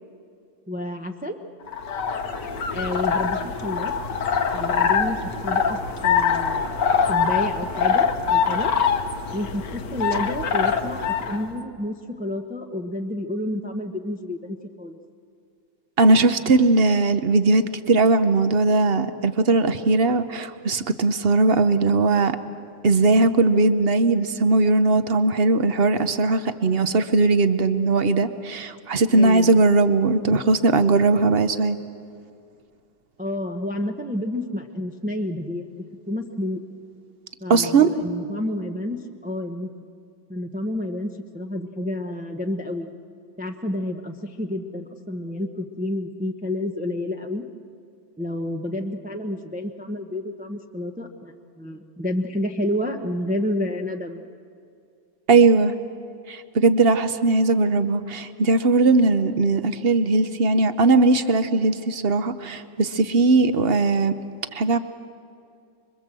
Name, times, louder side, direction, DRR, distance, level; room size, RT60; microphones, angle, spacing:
voice 1, 0.7-1.4 2.7-3.9 4.5-5.2 5.4-5.8 6.0-6.8 7.1-8.7 9.3-15.0 29.1-29.6 33.2-36.6 37.4-39.7 40.3-42.9 43.4-47.4 48.2-54.3, left 1 dB, 10° right, 3 dB, 0.6 m, -30 dB
sound 1, 1.7-11.4, left 6 dB, 65° left, 1.8 m, -23 dB
voice 2, 16.0-22.4 22.8-31.8 37.5-37.9 55.3-55.7 56.3-64.1 64.5-64.8, right 3 dB, 50° right, 10 dB, 0.7 m, -19 dB
25.5 x 23.5 x 7.6 m, 2.4 s
omnidirectional pair, 2.0 m